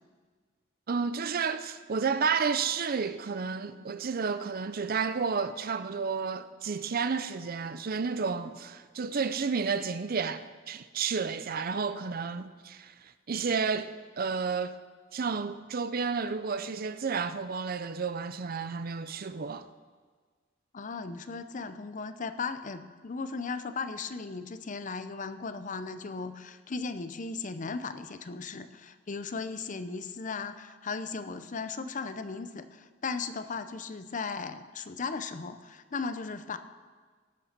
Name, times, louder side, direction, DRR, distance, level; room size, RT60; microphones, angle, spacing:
voice 1, 0.9-14.8 15.1-19.7, right 5 dB, 50° right, 0.5 m, -31 dB
voice 2, 20.7-36.6, left 4 dB, 40° left, 0.6 m, -37 dB
18.0 x 6.8 x 5.9 m
head